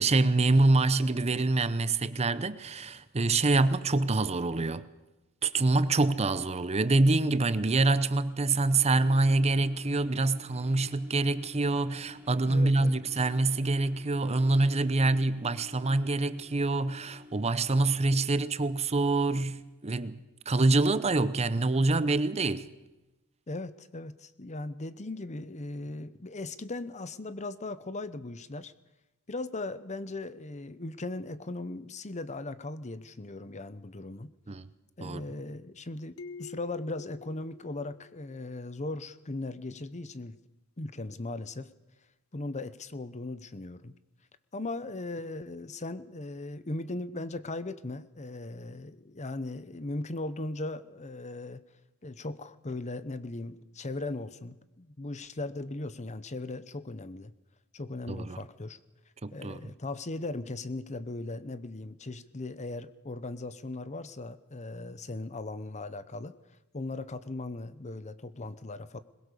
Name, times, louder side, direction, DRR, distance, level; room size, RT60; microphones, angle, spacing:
voice 1, 0.0-4.9 5.4-20.2 20.5-22.7 34.5-34.6 35.0-35.2 58.1-58.4 59.2-59.7, right 2 dB, 30° right, 0.7 m, -26 dB
sound 1, 7.8-19.9 20.4-20.5, left 2 dB, 10° right, 3.5 m, -53 dB
voice 2, 12.5-13.0 23.5-28.7 29.3-34.3 35.0-40.4 40.8-41.7 42.3-43.9 44.5-51.6 52.0-57.3 57.7-58.8 59.3-66.3 66.7-69.0, left 2 dB, 30° left, 0.8 m, -38 dB
sound 2, 36.2-38.7, left 6 dB, 70° left, 1.3 m, -48 dB
21.5 x 21.5 x 6.8 m
head